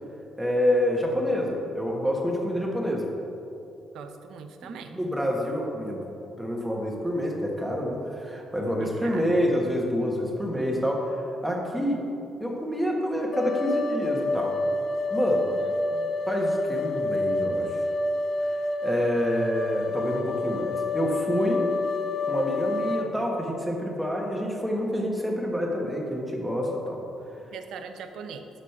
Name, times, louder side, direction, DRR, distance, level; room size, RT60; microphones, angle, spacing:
voice 1, 0.4-3.1 4.6-6.0 6.4-12.0 12.4-14.6 15.1-15.5 16.2-17.8 18.5-21.7 22.3-27.0, equal, 5° right, -1 dB, 1.3 m, -27 dB
voice 2, 3.9-5.0 8.8-9.4 15.6-16.1 27.5-28.5, right 6 dB, 80° right, 7 dB, 0.6 m, -41 dB
sound 1, 13.3-23.1, left 2 dB, 55° left, 0.5 m, -28 dB
6.3 x 5.0 x 5.7 m, 2.8 s
cardioid pair, 90°, 0 cm